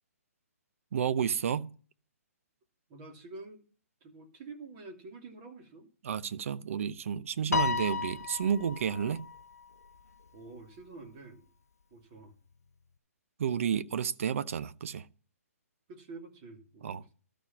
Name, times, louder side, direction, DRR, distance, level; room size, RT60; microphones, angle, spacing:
voice 1, 0.9-1.7 6.0-9.2 13.4-15.1 16.8-17.0, right 8 dB, 60° right, 0.7 m, -31 dB
voice 2, 2.9-3.7 4.0-5.9 10.3-11.5 11.9-12.3 15.9-17.1, right 3 dB, 35° right, 2.8 m, -48 dB
Piano, 7.5-10.0, left 5 dB, 90° left, 0.5 m, -33 dB
13.0 x 5.1 x 7.3 m
hypercardioid pair, 135°, 8 cm